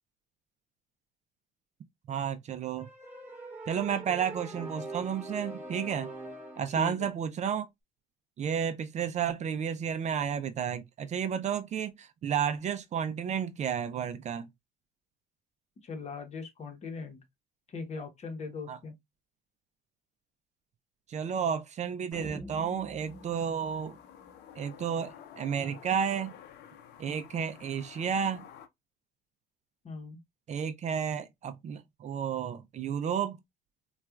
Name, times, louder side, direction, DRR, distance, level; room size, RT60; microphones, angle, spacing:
voice 1, 2.1-2.9 3.7-6.1 6.6-7.7 8.4-14.5 18.7-18.8 21.1-24.0 24.6-26.3 27.0-28.5 30.5-33.4, right 7 dB, 45° right, 0.5 m, -32 dB
sound 1, 2.8-6.8, right 2 dB, 10° right, 1.6 m, -43 dB
voice 2, 6.7-7.1 15.8-17.2 17.7-18.9 27.4-27.5 29.8-30.2, left 4 dB, 40° left, 1.0 m, -39 dB
sound 2, 22.1-24.6, equal, 5° left, 1.8 m, -47 dB
sound 3, 22.9-28.7, left 9 dB, 75° left, 0.6 m, -51 dB
4.2 x 2.4 x 2.3 m
cardioid pair, 110°, 17 cm